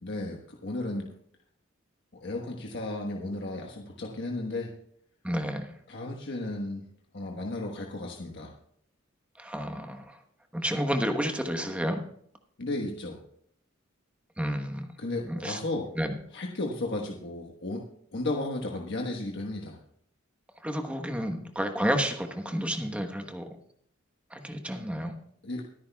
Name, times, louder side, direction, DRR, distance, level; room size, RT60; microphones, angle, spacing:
voice 1, 0.0-1.1 2.2-4.7 5.9-6.8 7.1-8.5 12.6-13.2 15.0-15.9 16.3-17.8 18.1-19.8 25.4-25.6, left 2 dB, 60° left, 0 dB, 1.3 m, -34 dB
voice 2, 5.2-5.7 9.4-10.2 10.5-12.0 14.4-14.9 15.3-15.6 16.0-16.1 20.6-23.5 24.3-25.1, equal, 5° right, 5 dB, 1.1 m, -30 dB
23.5 x 10.0 x 2.3 m, 0.67 s
head